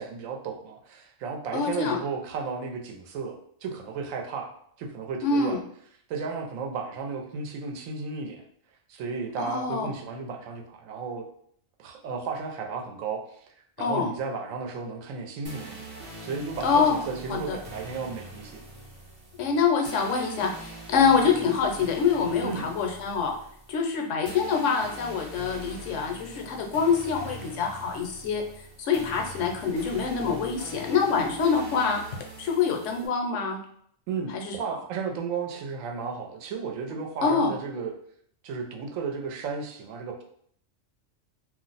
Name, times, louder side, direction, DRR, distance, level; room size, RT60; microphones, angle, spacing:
voice 1, 0.0-4.5 4.8-5.6 6.1-8.4 8.9-11.2 11.8-13.4 13.8-15.9 16.2-18.6 22.4-22.7 34.1-37.9 38.4-40.2, right 5 dB, 85° right, 2 dB, 1.0 m, -34 dB
voice 2, 1.5-2.0 5.2-5.6 9.4-9.9 13.8-14.1 16.6-17.0 17.3-17.6 19.4-23.3 23.7-28.4 28.8-32.0 32.4-33.6 34.3-34.6 37.2-37.5, left 5 dB, 70° left, 2 dB, 0.9 m, -25 dB
sound 1, 15.4-33.1, right 1 dB, 35° right, 0.7 m, -43 dB
2.5 x 2.0 x 3.9 m, 0.65 s
omnidirectional pair, 1.3 m